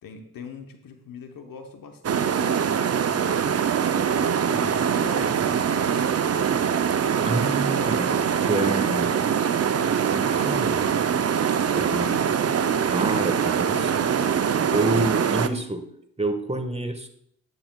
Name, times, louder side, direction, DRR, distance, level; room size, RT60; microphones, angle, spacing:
voice 1, 0.0-3.7 4.4-6.1 11.7-12.4 13.7-14.7, left 6 dB, 80° left, 5 dB, 1.0 m, -43 dB
sound 1, 2.0-15.5, right 7 dB, 45° right, 0.5 m, -23 dB
voice 2, 7.2-9.3 10.1-10.9 11.7-12.1 12.9-14.0 14.7-15.8 16.2-17.1, right 2 dB, 20° right, 6 dB, 1.3 m, -28 dB
10.5 x 8.5 x 2.3 m, 0.70 s
supercardioid pair, 40°, 33 cm